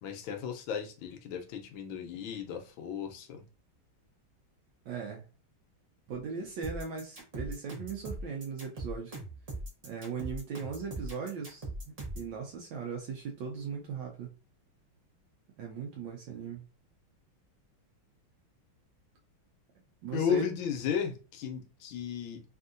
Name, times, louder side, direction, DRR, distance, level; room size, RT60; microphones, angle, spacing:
voice 1, 0.0-3.4 20.1-22.4, left 8 dB, 80° left, 1.4 m, -34 dB
voice 2, 4.9-5.2 6.1-9.2 9.8-11.7 12.2-14.3 15.6-16.6 20.0-20.5, right 5 dB, 75° right, 1.2 m, -38 dB
sound 1, 6.6-12.3, right 2 dB, 40° right, 0.5 m, -40 dB
3.5 x 2.6 x 2.5 m
omnidirectional pair, 2.3 m